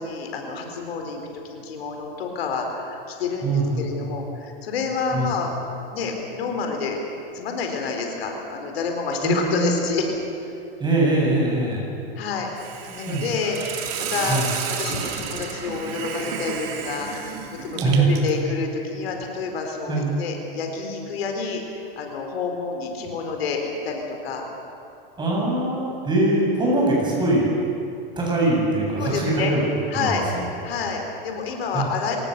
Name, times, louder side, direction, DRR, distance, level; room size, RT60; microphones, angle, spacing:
voice 1, 0.0-5.5 5.9-7.0 7.3-10.1 12.2-12.5 13.0-13.6 14.1-14.4 14.8-24.5 29.0-29.5 29.9-30.2 30.6-32.2, left 5 dB, 85° left, 3 dB, 4.3 m, -28 dB
voice 2, 3.4-4.1 5.1-5.3 9.2-9.7 10.8-11.9 13.1-13.3 14.3-14.5 17.7-18.1 19.9-20.1 25.2-27.5 28.2-29.6 29.9-30.4 31.7-31.9, right 2 dB, 15° right, -3 dB, 7.9 m, -22 dB
Hiss, 12.6-18.4, right 7 dB, 50° right, 3.2 m, -32 dB
27.0 x 18.0 x 6.8 m, 2.7 s
supercardioid pair, 140°, 30 cm